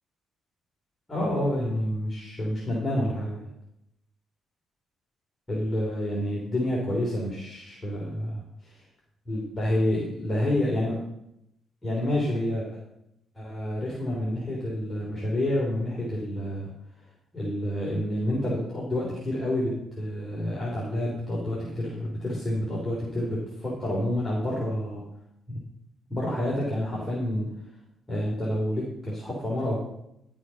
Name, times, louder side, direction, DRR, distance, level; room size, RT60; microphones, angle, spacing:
voice 1, 1.1-3.5 5.5-8.8 9.2-11.0 11.8-12.8 13.3-16.7 17.3-25.0 25.5-25.6 26.1-27.5 28.1-29.8, left 1 dB, 20° left, -5 dB, 3.5 m, -28 dB
12.0 x 6.5 x 5.8 m, 0.80 s
cardioid pair, 90°, 0 cm